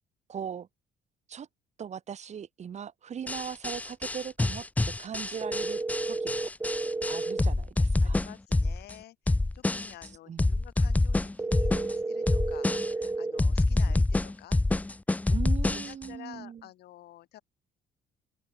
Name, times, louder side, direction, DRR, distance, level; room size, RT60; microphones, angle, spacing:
voice 1, 0.3-0.7 1.3-1.5 1.8-4.7 5.0-5.8 6.1-6.5 7.1-8.2 10.3-10.4 15.3-16.6, right 8 dB, 40° right, 2.2 m, -39 dB
sound 1, 3.3-8.9 9.3-10.1 10.4-11.9 12.3-13.1 13.4-16.1, left 2 dB, 10° left, 0.5 m, -27 dB
sound 2, 5.4-7.4 11.4-13.4, right 3 dB, 15° right, 3.6 m, -32 dB
voice 2, 8.0-14.6 15.7-17.4, left 14 dB, 70° left, 6.6 m, -50 dB
open air
cardioid pair, 110°, 17 cm